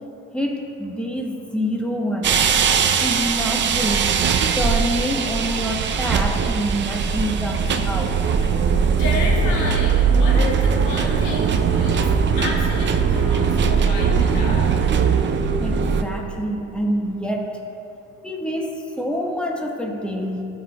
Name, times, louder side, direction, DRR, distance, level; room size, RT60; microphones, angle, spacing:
voice 1, 0.3-2.4 3.0-4.2 4.6-8.1 15.6-17.6 18.2-20.4, equal, 5° left, 0 dB, 1.1 m, -26 dB
sound 1, 2.2-16.0, right 6 dB, 40° right, 0.5 m, -20 dB
voice 2, 9.0-12.1 12.4-14.8, left 2 dB, 85° left, -3 dB, 1.6 m, -31 dB
14.5 x 5.5 x 2.2 m, 2.8 s
supercardioid pair, 85°, 31 cm